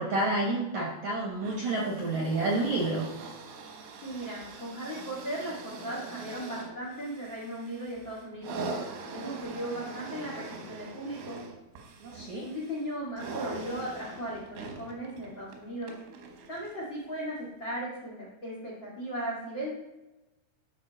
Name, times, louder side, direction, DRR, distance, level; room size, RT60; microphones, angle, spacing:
voice 1, 0.0-3.1 12.0-12.5, right 2 dB, 70° right, -3 dB, 1.8 m, -29 dB
sound 1, 1.4-16.9 17.7-17.8, right 3 dB, 85° right, 3.9 m, -42 dB
voice 2, 4.0-8.6 9.1-11.4 12.4-15.9 16.5-19.7, right 1 dB, 85° left, -4 dB, 1.0 m, -37 dB
12.5 x 5.1 x 4.1 m, 1.0 s
omnidirectional pair, 5.7 m